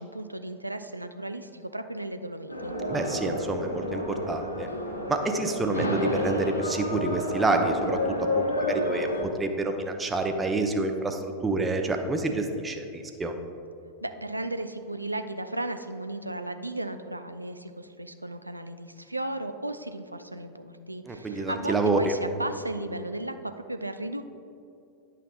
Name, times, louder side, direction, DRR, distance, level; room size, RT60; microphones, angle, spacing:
voice 1, 0.0-2.7 14.0-24.2, right 1 dB, 85° right, 9 dB, 0.3 m, -35 dB
sound 1, 2.5-9.2, left 1 dB, 85° left, 0.8 m, -30 dB
voice 2, 2.9-4.7 5.1-13.3 21.1-22.1, right 2 dB, 15° right, 5 dB, 0.6 m, -28 dB
10.5 x 5.8 x 2.4 m, 2.6 s
figure-of-eight pair, 90°, 0 cm